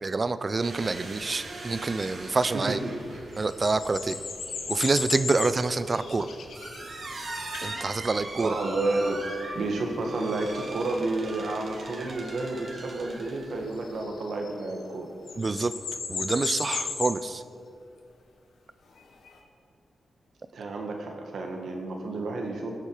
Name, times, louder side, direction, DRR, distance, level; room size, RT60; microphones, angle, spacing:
voice 1, 0.0-2.8 3.4-4.2 4.7-6.3 7.6-8.6 15.4-15.7 16.1-17.4, right 3 dB, 40° right, 13 dB, 0.6 m, -27 dB
sound 1, 0.6-14.0, right 2 dB, 60° right, 2.3 m, -41 dB
sound 2, 1.6-1.7 3.1-7.2 7.5-7.8 9.2-9.3 13.7-15.0 15.3-17.2 19.0-19.4, left 5 dB, 85° left, 1.5 m, -35 dB
voice 2, 2.5-2.9 8.4-9.2 9.5-15.1 20.5-22.7, right 2 dB, 80° right, 2 dB, 1.9 m, -30 dB
19.5 x 8.2 x 5.0 m, 2.4 s
cardioid pair, 80°, 0 cm